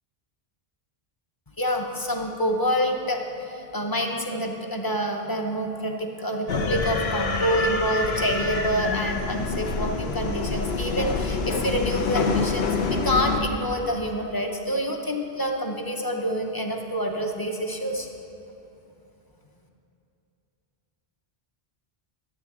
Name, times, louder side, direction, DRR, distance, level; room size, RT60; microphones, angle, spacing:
voice 1, 1.6-12.7 13.0-18.1, equal, 25° left, 1 dB, 0.7 m, -27 dB
sound 1, 6.5-13.4, left 4 dB, 85° left, 0.9 m, -27 dB
11.5 x 8.4 x 3.5 m, 2.8 s
omnidirectional pair, 1.0 m